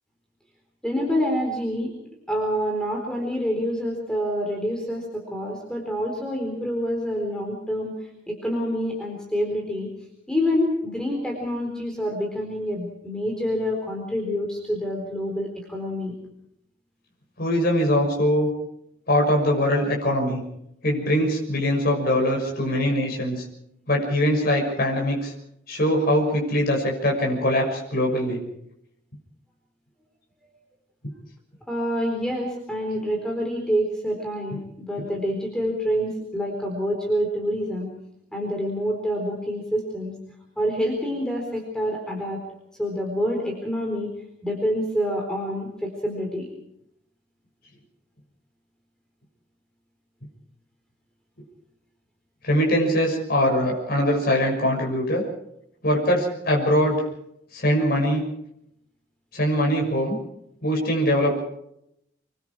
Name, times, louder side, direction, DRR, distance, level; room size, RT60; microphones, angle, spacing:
voice 1, 0.8-1.9 2.3-9.9 10.3-16.1 31.7-37.9 38.3-40.1 40.6-42.4 42.8-44.1 44.4-46.5, equal, 5° left, 0 dB, 4.2 m, -27 dB
voice 2, 17.4-18.5 19.1-20.4 20.8-23.4 23.9-25.3 25.7-28.4 52.4-55.2 55.8-57.0 57.5-58.2 59.3-60.2 60.6-61.4, equal, 50° left, 0 dB, 6.4 m, -22 dB
27.0 x 22.5 x 4.9 m, 0.77 s
head